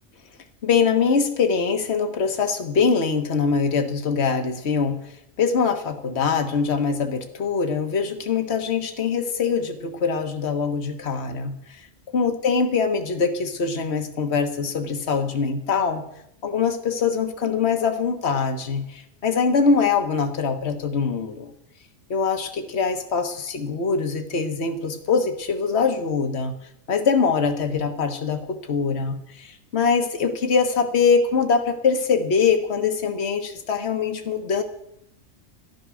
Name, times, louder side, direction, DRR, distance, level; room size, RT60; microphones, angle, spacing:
voice 1, 0.6-5.0 5.4-11.9 12.1-16.0 16.4-21.5 22.1-26.5 26.9-34.6, left 5 dB, 60° left, 6 dB, 1.6 m, -23 dB
15.0 x 11.5 x 6.3 m, 0.75 s
omnidirectional pair, 1.3 m